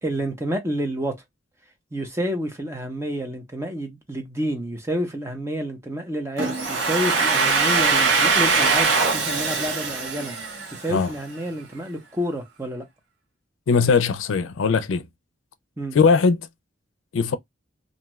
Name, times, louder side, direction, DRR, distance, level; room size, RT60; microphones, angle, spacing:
voice 1, 0.0-1.2 1.9-10.3 10.7-12.8 15.8-16.0, equal, 15° right, 0.7 m, -29 dB
Domestic sounds home sounds, 6.4-11.1, right 4 dB, 75° right, 1.1 m, -22 dB
voice 2, 13.7-15.1 15.9-16.5 17.1-17.4, left 5 dB, 85° left, 0.4 m, -19 dB
2.6 x 2.3 x 3.0 m
head